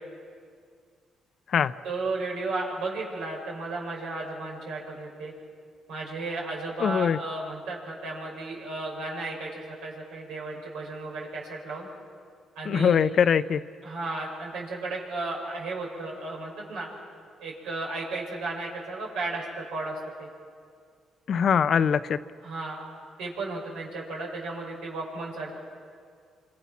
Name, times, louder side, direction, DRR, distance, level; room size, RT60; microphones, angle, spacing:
voice 1, 1.8-5.3 5.9-11.9 12.6-13.0 13.8-16.9 17.4-20.3 22.4-22.8 23.2-25.6, right 2 dB, 90° right, -2 dB, 7.1 m, -34 dB
voice 2, 6.8-7.2 12.7-13.6 21.3-22.2, left 7 dB, 60° left, 13 dB, 0.8 m, -22 dB
28.0 x 26.5 x 6.1 m, 2.1 s
cardioid pair, 90°, 0 cm